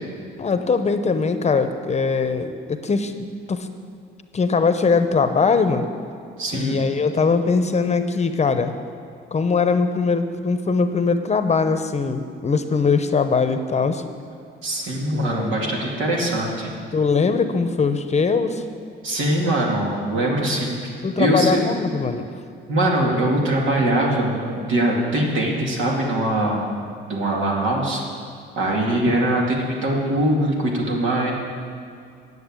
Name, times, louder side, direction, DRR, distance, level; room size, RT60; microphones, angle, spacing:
voice 1, 0.4-3.7 4.3-5.9 6.5-8.7 9.3-14.0 15.1-15.6 16.9-18.6 21.0-22.3, left 4 dB, 35° left, 9 dB, 0.8 m, -21 dB
voice 2, 6.4-6.8 14.6-16.7 19.0-20.9 21.2-21.6 22.7-26.7 27.0-28.0 28.6-31.3, right 1 dB, 75° right, -2 dB, 2.4 m, -22 dB
9.9 x 7.0 x 8.4 m, 2.4 s
cardioid pair, 90°, 20 cm